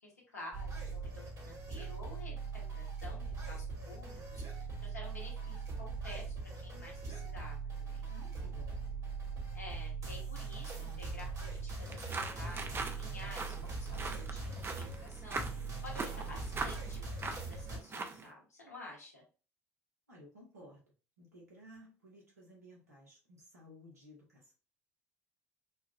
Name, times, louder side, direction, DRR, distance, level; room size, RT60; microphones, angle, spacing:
voice 1, 0.0-8.1 9.5-19.2, left 2 dB, 90° left, -3 dB, 1.1 m, -51 dB
sound 1, 0.5-17.8, right 4 dB, 45° right, 1.4 m, -41 dB
voice 2, 8.1-8.8 20.1-20.8 21.2-24.5, equal, 90° right, -4 dB, 1.3 m, -56 dB
sound 2, 11.8-18.3, right 3 dB, 25° right, 0.6 m, -42 dB
4.2 x 2.4 x 2.4 m, 0.36 s
figure-of-eight pair, 60°, 8 cm